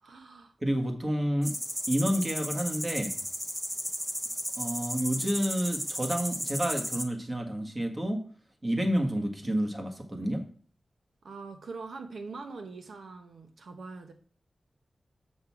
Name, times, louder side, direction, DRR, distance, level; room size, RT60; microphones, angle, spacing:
voice 1, 0.0-0.5 11.2-14.1, right 4 dB, 80° right, 6 dB, 0.9 m, -43 dB
voice 2, 0.6-1.5 1.9-3.2 4.6-8.2 8.6-10.4, equal, 25° right, 4 dB, 1.6 m, -29 dB
sound 1, 1.4-7.0, equal, 10° right, 0.8 m, -34 dB
7.3 x 6.5 x 4.7 m, 0.43 s
wide cardioid pair, 130°, 0 cm